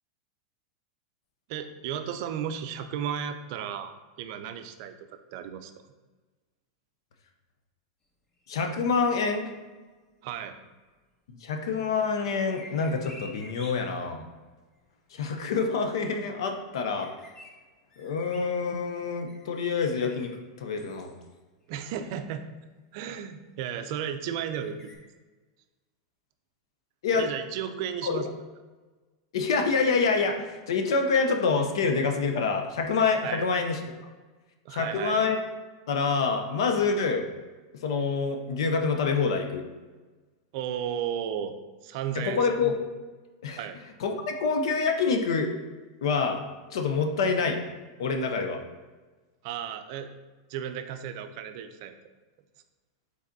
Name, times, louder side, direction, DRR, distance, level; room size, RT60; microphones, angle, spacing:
voice 1, 1.5-4.9 5.3-5.7 10.2-10.6 21.7-22.4 22.9-24.8 27.2-28.3 33.2-33.5 34.7-35.2 40.5-41.6 41.8-42.4 43.6-43.8 49.4-50.1 50.5-51.9, right 9 dB, 55° right, 8 dB, 0.4 m, -34 dB
voice 2, 8.5-9.5 11.3-14.2 15.1-17.1 18.0-21.2 27.0-27.3 28.0-28.2 29.3-33.8 34.7-35.4 35.9-37.3 37.8-39.7 42.1-42.9 43.4-43.6 44.0-45.5 46.0-46.4 46.7-47.6 48.0-48.6, left 4 dB, 80° left, 5 dB, 0.6 m, -26 dB
sound 1, 12.3-13.7 16.9-17.5 17.9-18.4 18.9-20.3 20.8-21.3 22.0-22.1 24.5-25.0, left 2 dB, 20° left, 0.7 m, -49 dB
5.0 x 4.0 x 2.6 m, 1.3 s
supercardioid pair, 150°, 3 cm